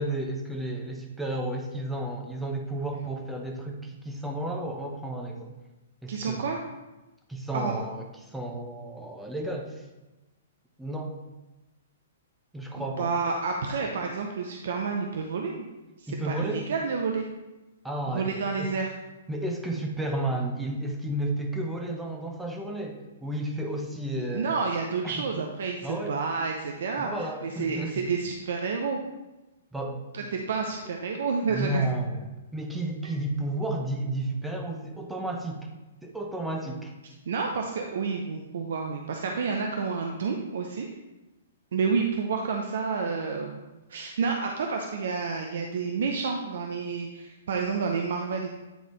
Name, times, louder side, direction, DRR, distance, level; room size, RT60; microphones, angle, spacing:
voice 1, 0.0-5.5 6.0-6.4 7.3-9.9 10.8-11.1 12.5-13.1 16.1-16.6 17.8-18.3 18.6-18.7 19.3-24.5 25.0-25.5 25.8-26.2 27.0-28.0 29.7-30.0 31.5-32.3 32.5-35.7 36.0-36.9, right 1 dB, 5° right, 1 dB, 0.9 m, -32 dB
voice 2, 6.1-6.6 7.5-7.7 12.8-15.7 16.0-17.3 18.1-18.9 24.3-29.0 30.1-31.9 37.3-40.9 41.7-43.6 43.9-48.5, right 5 dB, 70° right, 2 dB, 0.6 m, -29 dB
9.3 x 3.9 x 3.2 m, 1.1 s
hypercardioid pair, 125°, 0 cm